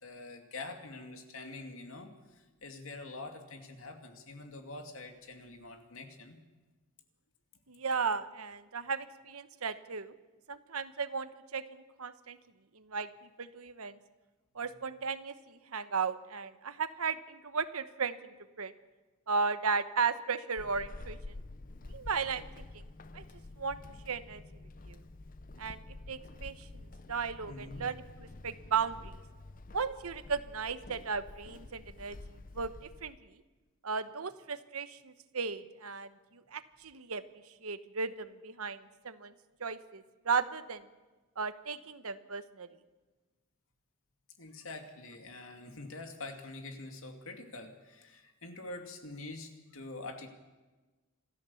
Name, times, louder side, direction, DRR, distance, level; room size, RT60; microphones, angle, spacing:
voice 1, 0.0-6.4 14.7-14.8 27.5-27.8 44.4-50.3, left 2 dB, 70° left, 4 dB, 2.5 m, -45 dB
voice 2, 7.7-10.1 10.5-12.4 12.7-13.1 13.4-14.0 14.5-18.3 18.6-18.7 19.3-21.2 21.9-22.7 23.1-23.2 23.6-23.8 24.0-24.4 24.9-25.0 25.6-25.8 26.1-26.7 27.1-28.1 28.4-29.1 29.7-32.2 32.5-32.7 33.0-33.2 33.8-36.1 36.5-37.2 37.6-39.3 39.6-40.8 41.4-42.7, right 5 dB, 85° right, 12 dB, 1.1 m, -35 dB
Walk footsteps / Squeak, 20.6-33.2, left 2 dB, 40° left, 0.6 m, -49 dB
26.5 x 14.0 x 7.1 m, 1.2 s
head